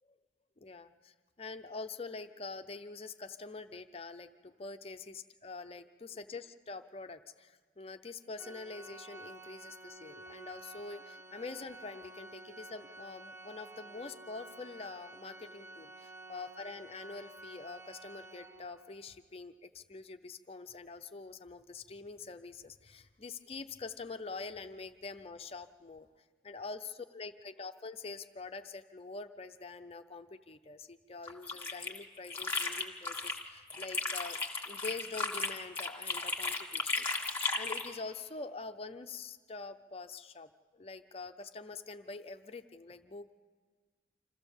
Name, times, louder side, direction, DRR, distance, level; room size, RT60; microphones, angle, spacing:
voice 1, 0.6-26.1 26.4-34.4 34.7-37.1 37.6-43.3, left 4 dB, 30° left, 8 dB, 0.6 m, -45 dB
Organ, 8.4-19.1, right 2 dB, 10° right, 0.7 m, -51 dB
sound 1, 31.3-33.4 33.7-37.9, left 3 dB, 10° left, 1.8 m, -35 dB
26.5 x 15.0 x 7.1 m, 1.5 s
head